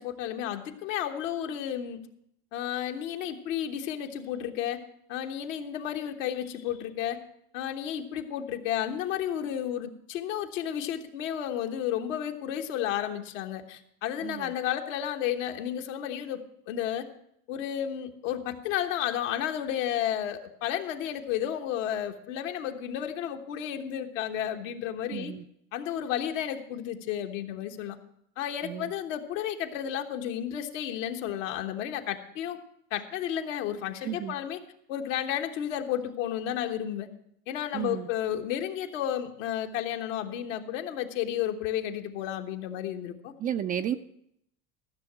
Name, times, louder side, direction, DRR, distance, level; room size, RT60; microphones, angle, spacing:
voice 1, 0.0-2.0 2.5-4.8 5.1-7.2 7.5-17.0 17.5-25.3 25.7-28.0 28.4-32.6 32.9-34.6 34.9-37.1 37.5-43.3, left 10 dB, 75° left, 5 dB, 1.3 m, -32 dB
voice 2, 14.2-14.5 25.1-25.4 28.6-28.9 34.0-34.4 37.7-38.1 43.4-43.9, right 10 dB, 25° right, 10 dB, 0.3 m, -32 dB
14.0 x 6.6 x 6.0 m, 0.73 s
hypercardioid pair, 105°, 38 cm